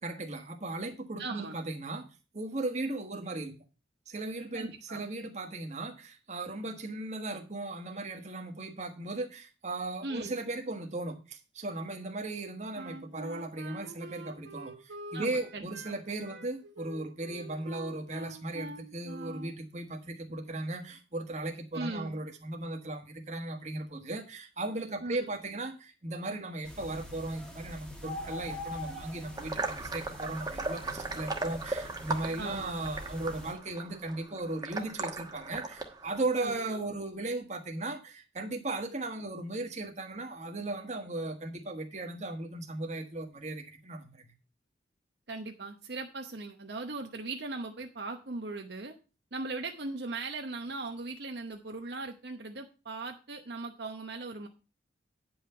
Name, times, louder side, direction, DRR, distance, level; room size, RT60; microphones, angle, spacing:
voice 1, 0.0-2.0 2.3-3.5 4.1-44.3, right 2 dB, 40° right, 5 dB, 1.4 m, -37 dB
voice 2, 1.2-1.6 4.5-5.0 10.0-10.3 15.1-15.9 21.7-22.2 25.0-25.3 32.4-32.8 36.4-36.8 45.3-48.9 49.3-54.5, right 3 dB, 65° right, 4 dB, 0.9 m, -39 dB
Wind instrument woodwind instrument, 12.7-19.6, right 1 dB, 90° right, 1.5 m, -46 dB
sound 1, 26.6-33.5, left 1 dB, 5° left, 1.4 m, -44 dB
sound 2, 29.4-36.2, right 3 dB, 20° right, 1.1 m, -37 dB
9.4 x 5.6 x 5.6 m, 0.32 s
head